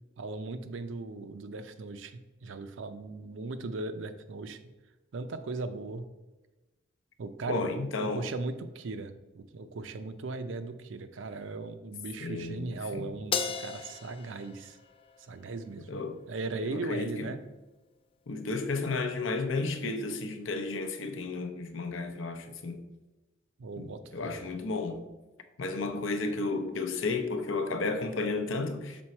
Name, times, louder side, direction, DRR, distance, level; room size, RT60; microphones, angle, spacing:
voice 1, 0.2-4.6 5.1-6.1 7.2-14.8 15.2-16.0 16.3-17.4 23.6-24.5, right 3 dB, 65° right, 0.5 m, -38 dB
voice 2, 7.5-8.3 12.2-12.7 12.9-13.1 15.9-16.2 16.7-17.3 18.3-22.8 23.8-25.1 25.6-29.0, left 3 dB, 70° left, 0.6 m, -33 dB
Crash cymbal, 13.3-15.8, left 5 dB, 25° left, 0.4 m, -36 dB
6.1 x 3.9 x 4.3 m
head